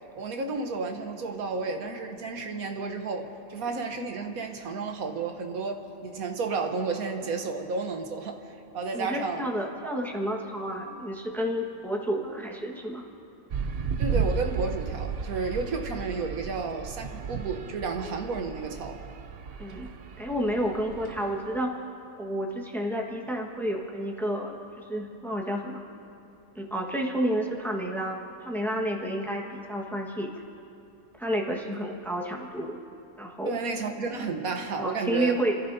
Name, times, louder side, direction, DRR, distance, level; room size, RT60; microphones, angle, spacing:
voice 1, 0.1-8.4 8.7-9.5 9.8-10.0 14.0-19.0 33.5-35.5, right 4 dB, 80° right, 4 dB, 1.5 m, -32 dB
voice 2, 8.9-13.0 19.6-19.9 20.2-21.7 22.2-25.8 26.5-30.3 31.2-32.8 33.2-33.6 34.8-35.5, equal, ahead, -1 dB, 1.3 m, -30 dB
sound 1, 13.5-21.5, right 6 dB, 55° right, 0.8 m, -34 dB
30.0 x 15.0 x 2.7 m, 2.7 s
omnidirectional pair, 1.5 m